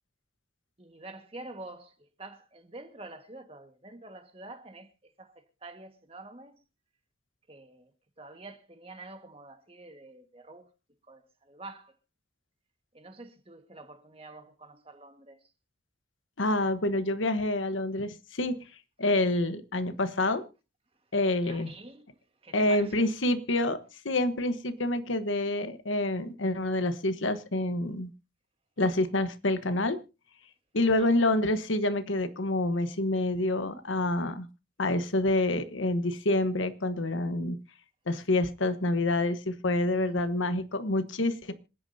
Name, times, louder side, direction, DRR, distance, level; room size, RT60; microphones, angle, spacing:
voice 1, 0.8-1.9 2.2-4.9 5.2-5.3 5.6-6.5 7.5-7.9 8.2-10.7 11.1-11.9 12.9-15.4 21.4-22.1 22.4-23.0 31.0-31.1 39.9-40.2, right 2 dB, 30° right, 1.7 m, -47 dB
voice 2, 16.4-18.5 19.0-20.5 21.1-21.7 22.5-23.8 24.0-28.1 28.8-30.0 30.7-34.5 34.8-37.6 38.1-41.5, left 2 dB, 85° left, 1.2 m, -27 dB
26.5 x 9.8 x 2.8 m
head